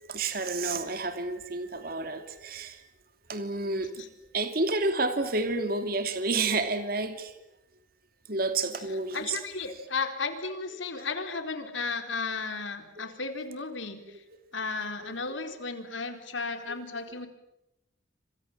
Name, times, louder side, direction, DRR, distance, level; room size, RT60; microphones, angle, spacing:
voice 1, 0.0-2.8 3.3-3.9 4.3-7.3 8.3-9.4 13.0-13.1 15.0-15.1 16.7-16.8, right 3 dB, 50° right, 8 dB, 2.8 m, -30 dB
voice 2, 9.1-14.2 14.5-17.3, left 4 dB, 80° left, 7 dB, 4.3 m, -34 dB
29.0 x 26.5 x 7.4 m, 0.84 s
head